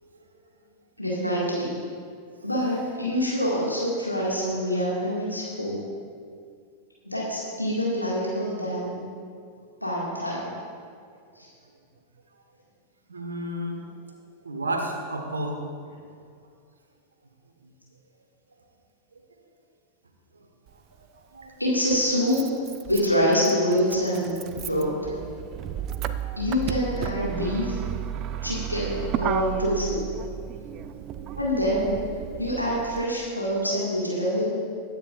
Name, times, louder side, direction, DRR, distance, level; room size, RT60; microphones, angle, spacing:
voice 1, 1.0-1.7 2.4-5.8 7.1-8.9 9.8-10.5 21.6-22.4 22.9-25.0 26.4-27.8 28.4-30.0 31.4-34.5, equal, 90° left, -5 dB, 2.1 m, -26 dB
voice 2, 13.1-13.8 14.4-15.6 16.1-16.2 21.3-21.5 27.0-27.1, right 1 dB, 75° right, 3 dB, 1.5 m, -31 dB
Motor vehicle (road), 20.7-20.8 21.9-33.0, right 10 dB, 35° right, 0.5 m, -33 dB
21.0 x 9.1 x 2.6 m, 2.2 s
figure-of-eight pair, 90°, 0 cm